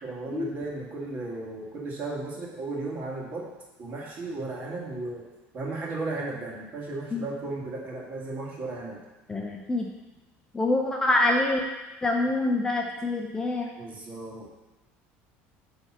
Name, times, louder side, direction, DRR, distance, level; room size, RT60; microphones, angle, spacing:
voice 1, 0.0-3.5 3.8-9.0 13.8-14.5, right 3 dB, 35° right, -3 dB, 1.9 m, -35 dB
voice 2, 9.3-9.9 10.5-11.6 12.0-13.7, left 2 dB, 10° left, 1 dB, 0.6 m, -25 dB
8.7 x 3.5 x 6.0 m, 1.1 s
cardioid pair, 155°, 5 cm